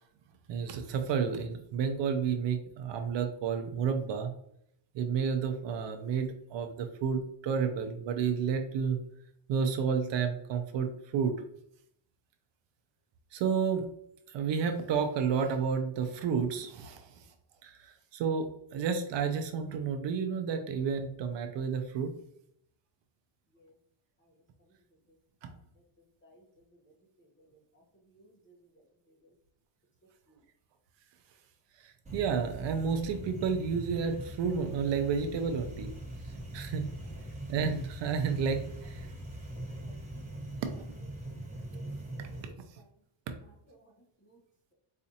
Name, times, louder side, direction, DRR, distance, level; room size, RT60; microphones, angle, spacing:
voice 1, 0.5-4.3 4.9-9.0 9.5-11.3 13.3-13.9 14.3-17.1 17.6-22.1 25.4-25.5 31.8-35.9 36.5-36.9 37.5-39.1 42.4-42.5, right 6 dB, 60° right, 6 dB, 0.6 m, -31 dB
voice 2, 26.2-26.6 27.2-27.8 28.1-29.3 30.3-30.4 39.8-40.4 41.4-42.4 42.8-42.9 43.7-43.9 44.2-44.4, right 1 dB, 25° left, 0 dB, 0.9 m, -61 dB
sound 1, 32.1-42.5, right 1 dB, 15° right, 1.0 m, -42 dB
4.2 x 2.4 x 2.7 m, 0.71 s
cardioid pair, 145°, 50 cm